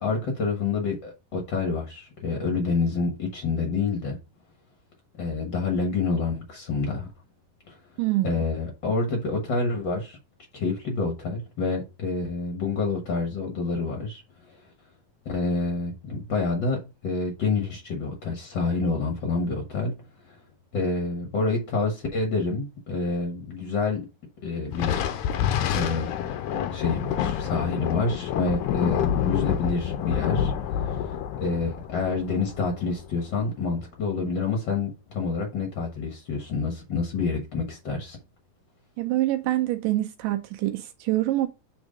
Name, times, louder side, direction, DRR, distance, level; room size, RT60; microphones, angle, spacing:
voice 1, 0.0-4.2 5.2-7.1 7.7-7.8 8.2-10.2 10.5-14.7 15.2-19.9 20.2-20.4 20.7-24.0 24.4-24.9 25.7-26.1 26.5-30.5 30.8-38.2, left 4 dB, 50° left, 1.5 m, -28 dB
voice 2, 8.0-8.4 39.0-41.5, right 15 dB, 85° right, 2.3 m, -25 dB
Thunder, 24.7-33.5, left 9 dB, 75° left, 2.0 m, -28 dB
6.2 x 3.6 x 5.0 m
omnidirectional pair, 3.7 m